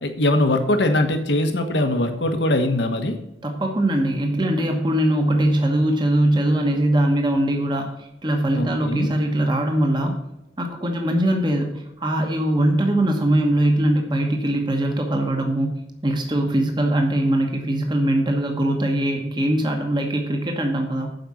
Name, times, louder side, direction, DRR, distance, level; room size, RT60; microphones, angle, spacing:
voice 1, 0.0-3.2 8.5-9.1, left 1 dB, 75° left, 6 dB, 1.3 m, -21 dB
voice 2, 3.4-10.2 10.6-21.1, right 1 dB, 25° right, 3 dB, 1.1 m, -21 dB
7.9 x 5.2 x 7.4 m, 0.85 s
head